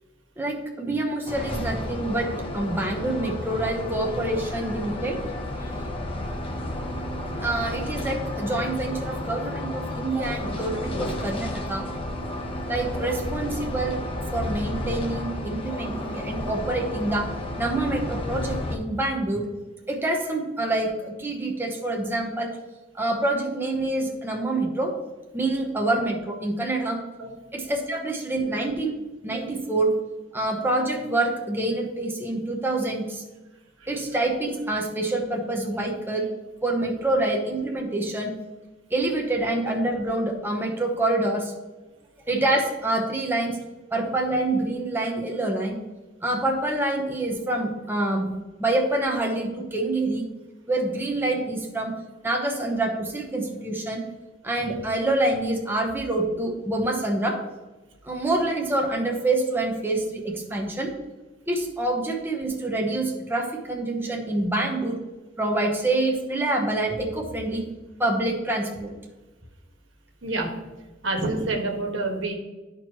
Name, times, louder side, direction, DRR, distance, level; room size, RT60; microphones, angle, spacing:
voice 1, 0.4-2.3 2.5-5.2 7.4-11.9 12.7-14.0 14.3-17.3 17.6-19.4 19.9-22.5 22.9-24.9 25.3-27.0 27.5-29.0 29.2-29.9 30.3-33.2 33.9-36.3 36.6-38.3 38.9-41.5 42.3-43.6 43.9-45.8 46.2-48.3 48.6-50.3 50.7-51.9 52.2-54.0 54.4-57.4 58.0-60.9 61.5-65.0 65.4-67.6 68.0-68.9, right 2 dB, 10° right, 0 dB, 0.9 m, -26 dB
sound 1, 1.3-18.8, left 1 dB, 30° left, 0.9 m, -32 dB
voice 2, 70.2-70.5 71.0-72.3, right 2 dB, 80° right, 1 dB, 1.5 m, -27 dB
12.5 x 4.5 x 3.0 m, 1.2 s
head